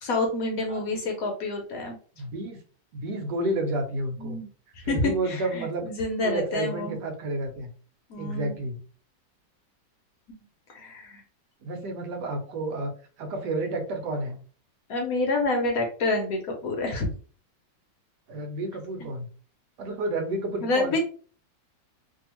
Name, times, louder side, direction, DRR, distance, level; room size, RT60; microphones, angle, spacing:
voice 1, 0.0-2.0 4.2-4.5 4.7-7.0 8.1-8.5 10.7-11.2 14.9-17.1 20.6-21.0, left 2 dB, 65° left, 2 dB, 1.0 m, -28 dB
voice 2, 0.7-1.0 2.2-2.6 2.9-4.4 4.8-5.8 6.2-7.7 8.2-8.8 11.6-12.9 13.2-14.4 18.3-19.3 19.8-21.0, right 2 dB, 75° right, 5 dB, 1.2 m, -30 dB
2.8 x 2.6 x 2.9 m, 0.40 s
omnidirectional pair, 1.9 m